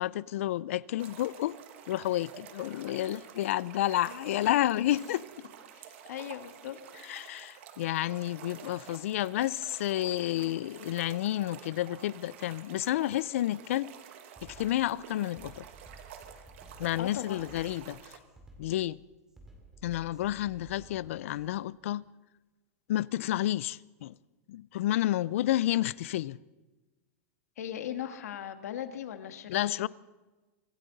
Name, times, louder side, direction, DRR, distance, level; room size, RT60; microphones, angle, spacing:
voice 1, 0.0-1.6 1.9-5.2 7.0-13.9 14.4-15.6 16.8-18.2 18.6-19.0 19.8-22.1 22.9-24.1 24.5-26.4 29.5-29.9, left 14 dB, 60° left, 0.4 m, -30 dB
sound 1, 1.0-18.2, right 9 dB, 50° right, 1.6 m, -50 dB
voice 2, 5.7-6.8 17.0-17.6 27.6-29.9, left 10 dB, 80° left, 1.5 m, -39 dB
Drum kit, 13.6-13.8 14.3-21.5, right 2 dB, 10° right, 2.3 m, -54 dB
25.0 x 13.0 x 4.0 m
supercardioid pair, 175°, 8 cm